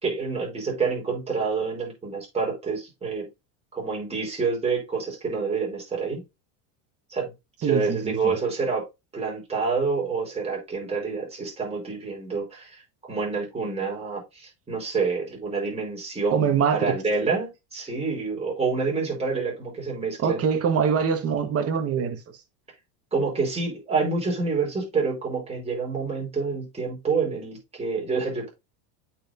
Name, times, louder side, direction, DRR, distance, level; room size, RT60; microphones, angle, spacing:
voice 1, 0.0-3.3 3.7-6.2 7.1-7.3 7.6-8.8 9.1-12.8 13.1-20.4 23.1-28.5, right 4 dB, 15° right, 4.9 m, -28 dB
voice 2, 7.6-8.4 16.3-16.9 20.2-22.2, right 7 dB, 30° right, 1.6 m, -24 dB
8.4 x 5.7 x 2.7 m
supercardioid pair, 145°, 46 cm